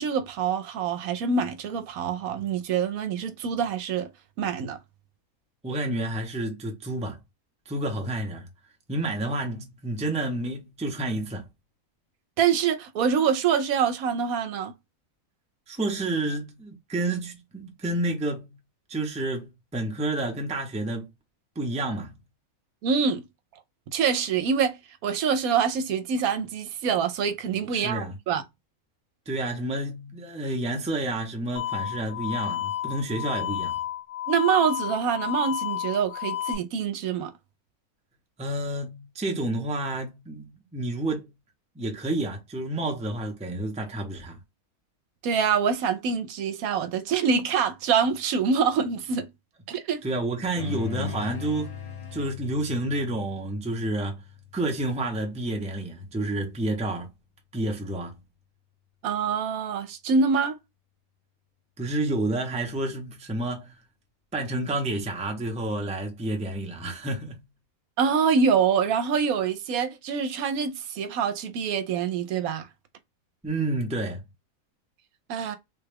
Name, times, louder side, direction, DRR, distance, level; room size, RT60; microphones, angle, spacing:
voice 1, 0.0-4.1 4.4-4.8 12.4-14.7 22.8-23.2 23.9-28.4 34.3-37.3 45.2-49.3 49.7-50.0 59.0-60.6 68.0-72.7 75.3-75.6, right 6 dB, 80° right, 1.0 m, -25 dB
voice 2, 5.6-7.2 7.7-8.5 8.9-11.5 15.7-18.5 18.9-21.1 21.6-22.1 27.7-28.2 29.3-33.8 38.4-41.3 41.7-44.4 50.0-51.8 52.1-54.2 54.5-57.1 57.5-58.2 61.8-63.7 64.3-67.4 73.4-74.2, right 2 dB, 10° right, 0.5 m, -29 dB
sound 1, 31.6-36.6, left 12 dB, 60° left, 1.2 m, -31 dB
sound 2, 50.5-55.3, left 7 dB, 35° left, 0.6 m, -38 dB
3.5 x 2.2 x 3.3 m
omnidirectional pair, 1.5 m